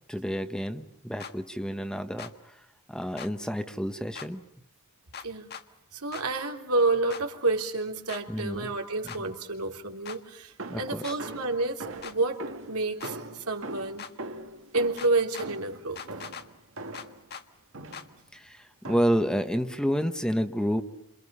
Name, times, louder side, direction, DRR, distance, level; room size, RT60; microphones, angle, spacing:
voice 1, 0.1-2.6 2.9-4.4 8.3-8.7 10.7-11.2 18.3-20.8, equal, 5° left, 8 dB, 1.2 m, -29 dB
sound 1, 1.2-1.3 2.2-2.3 3.2-3.3 4.1-4.3 5.1-5.6 6.1-6.3 7.1-7.2 8.1-8.2 9.1-9.2 10.0-10.2 11.0-11.2 12.0-12.2 13.0-13.1 14.0-14.1 15.0-15.5 16.0-16.5 16.9-17.4 17.9-18.1, left 7 dB, 50° left, 1.6 m, -41 dB
voice 2, 5.9-12.4 12.7-14.1 14.7-16.0, right 3 dB, 85° right, 3 dB, 3.6 m, -29 dB
sound 2, 10.6-17.2 17.7-18.2 18.8-19.3, right 2 dB, 60° right, 2.1 m, -41 dB
30.0 x 27.5 x 5.6 m, 0.81 s
head